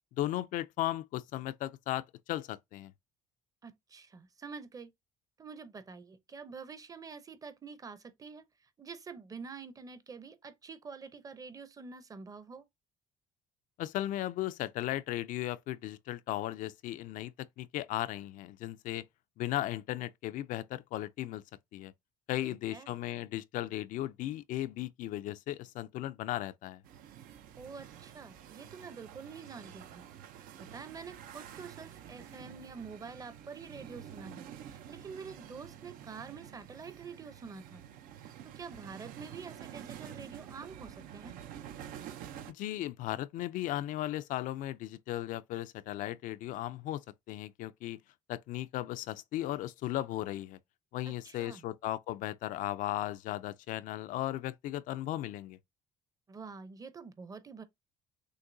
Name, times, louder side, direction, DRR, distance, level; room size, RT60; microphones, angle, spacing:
voice 1, 0.1-2.9 13.8-19.1 19.4-21.4 21.7-21.9 22.3-26.8 42.5-47.0 47.3-48.0 48.3-50.6 50.9-55.6, left 14 dB, 65° left, 0.4 m, -36 dB
voice 2, 3.6-4.9 5.4-12.6 22.4-22.9 27.6-30.0 30.4-37.8 38.2-41.4 51.1-51.7 56.3-57.6, right 5 dB, 25° right, 0.7 m, -47 dB
sound 1, 26.8-42.5, right 10 dB, 75° right, 0.6 m, -49 dB
6.4 x 2.6 x 2.6 m
cardioid pair, 115°, 14 cm